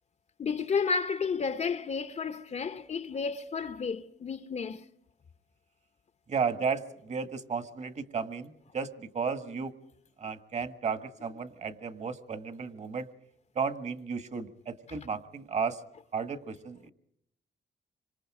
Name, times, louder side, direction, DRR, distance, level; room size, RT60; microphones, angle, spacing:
voice 1, 0.4-4.9, left 5 dB, 40° left, 0.8 m, -32 dB
voice 2, 6.3-9.7 10.2-13.1 13.5-15.8 16.1-16.9, right 5 dB, 40° right, 1.7 m, -34 dB
27.0 x 25.5 x 4.9 m
wide cardioid pair, 160°, 18 cm